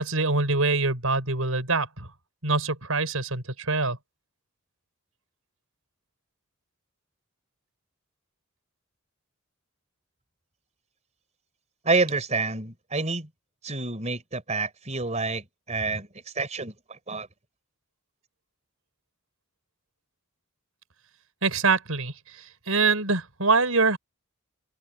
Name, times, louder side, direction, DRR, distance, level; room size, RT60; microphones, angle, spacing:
voice 1, 0.0-2.1 2.4-4.0 21.4-24.0, right 3 dB, 90° right, 4.9 m, -24 dB
voice 2, 11.8-13.3 13.6-17.3, right 3 dB, 35° right, 4.0 m, -28 dB
head